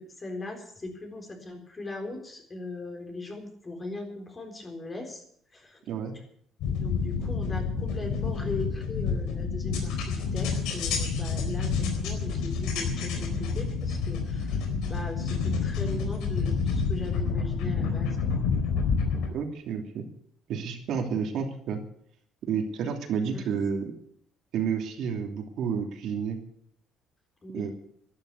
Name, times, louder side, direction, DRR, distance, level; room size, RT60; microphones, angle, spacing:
voice 1, 0.0-5.2 5.5-5.8 6.7-18.2 18.5-18.6 23.3-23.4 27.4-27.7, left 2 dB, 20° left, 3 dB, 4.0 m, -39 dB
sound 1, 6.6-19.3, left 5 dB, 85° left, 4.1 m, -28 dB
voice 2, 19.3-20.1 20.5-21.8 22.5-23.9 24.5-26.4 27.5-27.7, right 6 dB, 65° right, 3 dB, 2.9 m, -30 dB
12.5 x 12.5 x 8.4 m, 0.65 s
cardioid pair, 140°, 0 cm